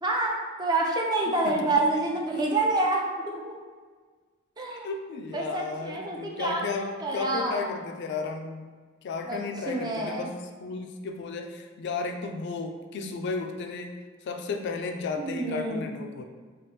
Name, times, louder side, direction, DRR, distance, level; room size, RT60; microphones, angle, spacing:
voice 1, 0.0-3.5 4.6-4.9 5.3-7.7 9.3-10.3 15.2-15.9, right 2 dB, 20° right, -1 dB, 0.4 m, -28 dB
voice 2, 1.3-1.7 4.7-8.7 9.0-14.0 14.2-16.3, left 4 dB, 60° left, 4 dB, 0.3 m, -34 dB
3.0 x 2.3 x 3.2 m, 1.5 s
head